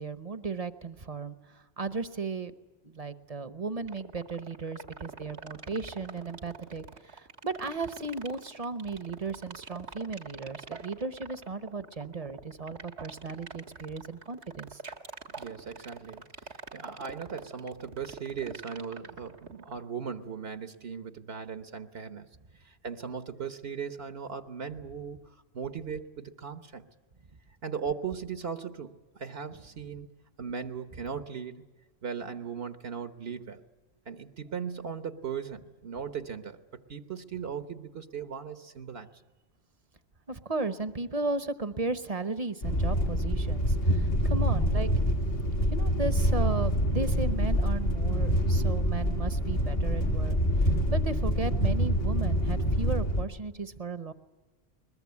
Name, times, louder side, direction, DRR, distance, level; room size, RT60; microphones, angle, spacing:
voice 1, 0.0-2.5 2.8-14.8 40.3-44.9 45.7-50.4 50.9-54.1, right 3 dB, 35° right, 13 dB, 1.0 m, -35 dB
sound 1, 3.8-19.8, right 5 dB, 85° right, 1.8 m, -44 dB
voice 2, 15.4-16.2 16.7-22.4 22.6-25.2 25.5-26.8 27.6-30.1 30.4-31.7 32.0-33.6 34.1-36.6 36.9-39.1 44.3-44.4, right 6 dB, 65° right, 10 dB, 1.3 m, -38 dB
sound 2, 42.6-53.2, equal, 60° left, 2.1 m, -26 dB
22.0 x 21.5 x 9.5 m, 1.3 s
omnidirectional pair, 1.1 m